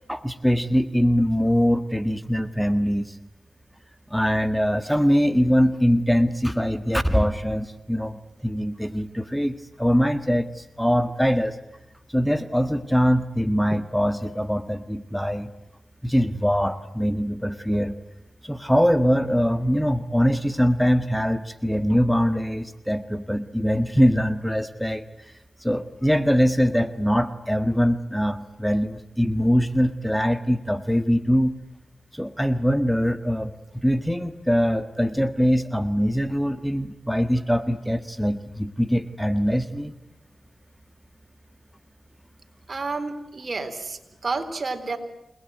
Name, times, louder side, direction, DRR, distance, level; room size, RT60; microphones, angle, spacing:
voice 1, 0.1-3.2 4.1-11.6 12.1-15.5 16.0-17.9 18.4-25.1 25.6-31.5 32.1-39.9, equal, ahead, 11 dB, 1.6 m, -22 dB
voice 2, 42.7-45.0, right 3 dB, 55° right, 7 dB, 3.9 m, -30 dB
28.5 x 20.0 x 9.2 m, 0.94 s
cardioid pair, 50°, 0 cm